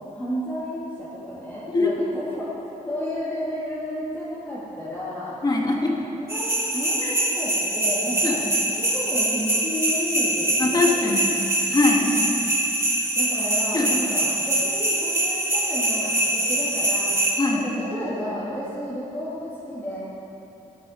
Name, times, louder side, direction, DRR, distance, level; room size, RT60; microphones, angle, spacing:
voice 1, 0.1-2.6 2.8-5.4 6.0-11.4 12.0-12.5 13.2-20.0, equal, 15° left, -11 dB, 2.0 m, -32 dB
voice 2, 5.4-5.9 7.0-7.1 8.2-8.3 10.6-11.3 11.7-12.0 13.7-13.9 17.4-17.6, left 3 dB, 30° left, 0 dB, 1.3 m, -22 dB
sound 1, 6.3-17.3, right 1 dB, 20° right, 2.0 m, -24 dB
12.5 x 11.5 x 4.2 m, 2.8 s
wide cardioid pair, 160°, 14 cm